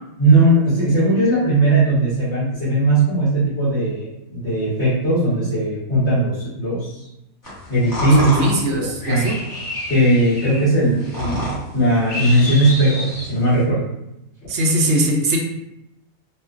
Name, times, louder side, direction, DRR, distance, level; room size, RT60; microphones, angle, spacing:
voice 1, 0.2-7.0 7.7-9.3 9.9-13.9, right 1 dB, 55° left, -11 dB, 1.5 m, -18 dB
sound 1, 7.4-13.6, left 1 dB, 20° left, 0.6 m, -29 dB
voice 2, 8.2-9.4 14.5-15.4, right 1 dB, 65° right, 0 dB, 0.8 m, -20 dB
3.0 x 2.2 x 2.4 m, 0.86 s
omnidirectional pair, 1.4 m